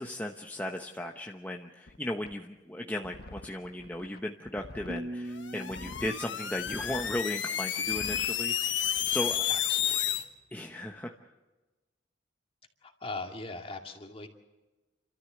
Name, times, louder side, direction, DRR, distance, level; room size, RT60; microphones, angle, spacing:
voice 1, 0.0-9.4 10.5-11.1, left 1 dB, 10° left, 2 dB, 0.9 m, -36 dB
sound 1, 1.9-2.0 2.2-2.3 3.0-5.1 5.7-6.1 6.5-7.2 7.8-8.3 8.8-9.4, left 2 dB, 55° left, 0.9 m, -47 dB
sound 2, 4.9-7.8, right 1 dB, 30° right, 1.4 m, -42 dB
sound 3, 5.4-10.2, left 10 dB, 75° left, 1.4 m, -31 dB
voice 2, 9.5-10.3 12.8-14.3, left 3 dB, 30° left, 4 dB, 2.2 m, -41 dB
29.0 x 13.0 x 7.9 m, 1.2 s
head